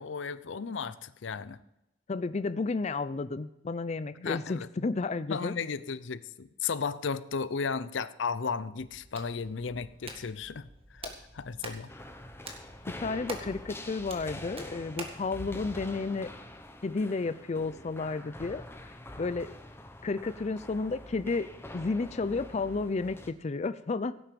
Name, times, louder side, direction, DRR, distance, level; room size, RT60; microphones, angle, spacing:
voice 1, 0.0-1.6 4.2-4.7 5.3-11.9, left 5 dB, 80° left, 16 dB, 0.6 m, -35 dB
voice 2, 2.1-5.5 13.0-16.3 16.8-18.6 19.2-19.6 20.0-21.5 21.7-24.1, left 3 dB, 35° left, 14 dB, 0.4 m, -32 dB
Hands, 8.8-15.3, right 2 dB, 30° right, 1.9 m, -46 dB
sound 1, 11.9-23.3, left 1 dB, 15° left, 1.0 m, -45 dB
16.5 x 9.1 x 5.2 m, 0.88 s
head